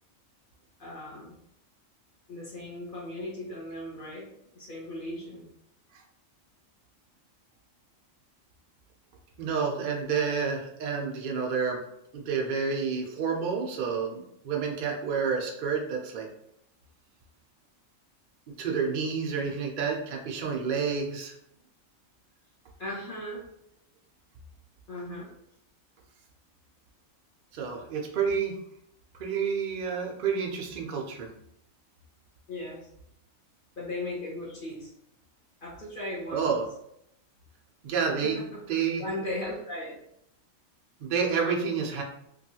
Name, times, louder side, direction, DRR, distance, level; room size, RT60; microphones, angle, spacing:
voice 1, 0.8-1.4 2.3-4.3 4.5-5.5 19.4-19.5 22.8-23.4 24.9-25.3 32.5-32.9 33.8-34.9 35.6-36.5 38.2-38.6 39.0-40.0, left 1 dB, 45° left, -5 dB, 0.8 m, -37 dB
voice 2, 9.4-11.8 12.1-16.3 18.6-21.3 27.5-28.5 29.2-31.3 36.3-36.6 37.8-38.4 38.7-39.0 41.0-42.0, right 6 dB, 65° right, 0 dB, 0.5 m, -29 dB
3.0 x 2.3 x 2.7 m, 0.77 s
omnidirectional pair, 1.4 m